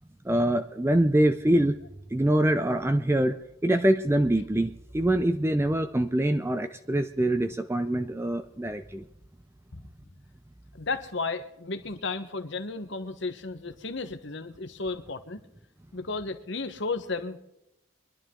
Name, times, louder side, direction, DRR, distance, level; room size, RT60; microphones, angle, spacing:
voice 1, 0.3-1.8 2.1-9.0, right 1 dB, 10° right, 9 dB, 0.4 m, -24 dB
voice 2, 10.8-15.4 15.9-17.4, left 3 dB, 60° left, 9 dB, 1.2 m, -33 dB
23.5 x 11.5 x 3.8 m, 0.85 s
head